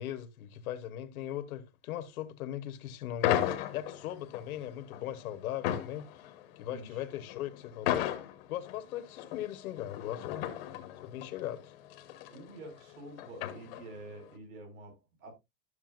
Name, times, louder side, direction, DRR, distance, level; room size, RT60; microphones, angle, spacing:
voice 1, 0.0-8.1 8.5-10.5 11.0-11.7, left 11 dB, 65° left, 1.3 m, -39 dB
sound 1, 3.2-14.2, left 12 dB, 40° left, 1.2 m, -36 dB
voice 2, 6.7-7.0 12.3-15.3, right 2 dB, 55° right, 5.4 m, -48 dB
12.5 x 6.8 x 2.5 m
supercardioid pair, 175°, 47 cm